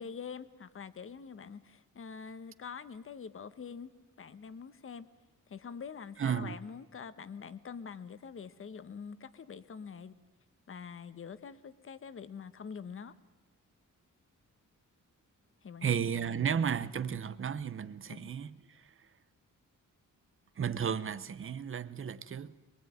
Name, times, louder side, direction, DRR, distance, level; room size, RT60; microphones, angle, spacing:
voice 1, 0.0-3.9 4.2-5.1 5.5-10.1 10.7-13.1 15.6-15.9 18.1-18.3, left 6 dB, 40° left, 1.2 m, -45 dB
voice 2, 6.2-6.6 15.8-19.1 20.6-22.5, right 7 dB, 40° right, 0.9 m, -34 dB
23.5 x 23.5 x 9.3 m
wide cardioid pair, 180°, 32 cm